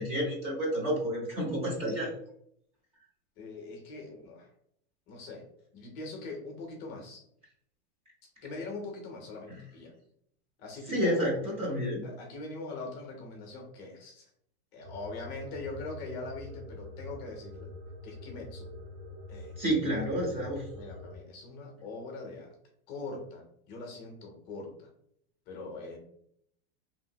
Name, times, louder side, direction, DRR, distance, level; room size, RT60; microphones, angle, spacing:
voice 1, 0.0-2.1 10.9-12.0 19.6-20.6, equal, 20° right, -2 dB, 0.6 m, -30 dB
voice 2, 3.4-4.5 5.1-5.4 5.7-7.2 8.4-9.9 10.6-11.4 12.0-14.3 14.7-17.7 18.0-18.7 19.3-19.5 20.7-22.5 22.9-24.9 25.5-26.0, left 3 dB, 30° left, 2 dB, 0.6 m, -42 dB
sound 1, 14.8-21.2, left 1 dB, 80° right, 1.0 m, -45 dB
2.8 x 2.5 x 2.6 m, 0.71 s
supercardioid pair, 155°, 32 cm